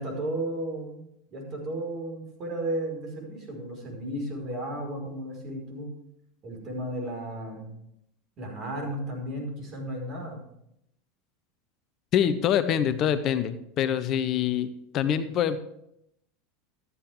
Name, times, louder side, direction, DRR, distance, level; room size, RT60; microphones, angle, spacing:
voice 1, 0.0-5.9 6.4-7.7 8.4-10.4, right 1 dB, 45° right, 1 dB, 5.1 m, -34 dB
voice 2, 12.1-15.6, left 9 dB, 45° left, 12 dB, 0.8 m, -25 dB
13.5 x 9.6 x 3.6 m, 0.77 s
hypercardioid pair, 85°, 0 cm